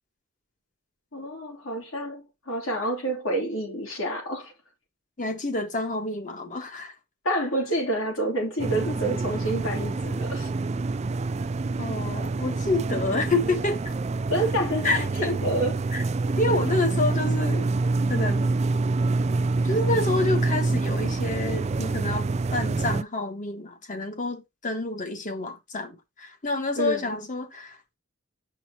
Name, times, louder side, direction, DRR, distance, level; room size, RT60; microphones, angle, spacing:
voice 1, 1.1-4.5 7.2-10.5 14.3-15.8 26.8-27.2, right 1 dB, 65° left, 3.4 m, -28 dB
voice 2, 5.2-6.9 11.8-13.9 14.8-15.4 15.9-16.0 16.4-17.7 18.1-18.6 19.6-27.9, left 2 dB, 40° left, 1.4 m, -28 dB
sound 1, 8.6-23.0, right 3 dB, 30° right, 0.4 m, -26 dB
7.4 x 5.5 x 2.9 m
head